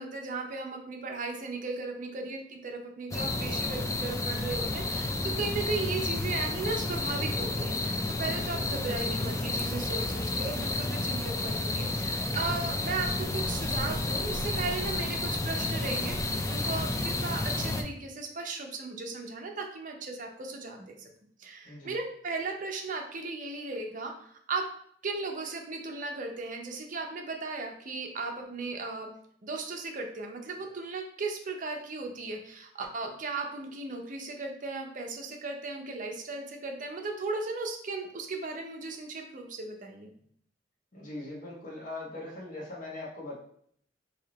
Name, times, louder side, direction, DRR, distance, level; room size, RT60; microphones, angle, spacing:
voice 1, 0.0-21.1 21.4-24.6 25.0-29.1 29.4-40.1, right 3 dB, 45° right, 2 dB, 0.6 m, -36 dB
sound 1, 3.1-17.8, left 2 dB, 15° left, 0.3 m, -31 dB
voice 2, 21.6-22.0 40.9-43.4, left 2 dB, 45° left, -4 dB, 1.2 m, -41 dB
3.2 x 2.8 x 3.8 m, 0.64 s
head